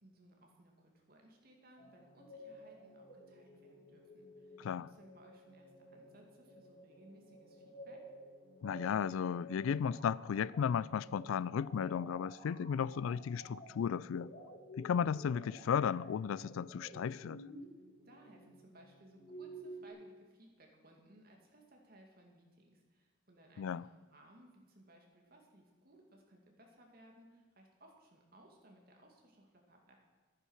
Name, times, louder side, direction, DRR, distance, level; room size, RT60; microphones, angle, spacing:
voice 1, 0.0-4.6 4.9-8.0 18.0-29.9, right 1 dB, 45° right, 2.3 m, -62 dB
sound 1, 1.8-19.9, right 1 dB, 50° left, 2.3 m, -53 dB
voice 2, 4.6-4.9 8.6-14.3 14.8-17.4 23.6-23.8, left 7 dB, 80° left, 0.3 m, -35 dB
11.5 x 9.9 x 6.4 m
head